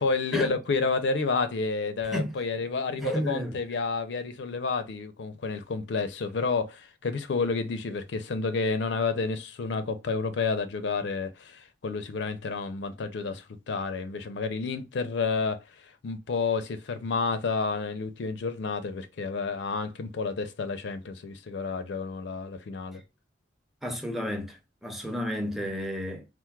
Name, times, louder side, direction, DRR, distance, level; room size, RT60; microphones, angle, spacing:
voice 1, 0.0-23.0, left 4 dB, 75° left, 0.4 m, -30 dB
voice 2, 3.0-3.6 23.8-26.3, equal, ahead, 0.5 m, -31 dB
4.4 x 2.0 x 2.2 m
head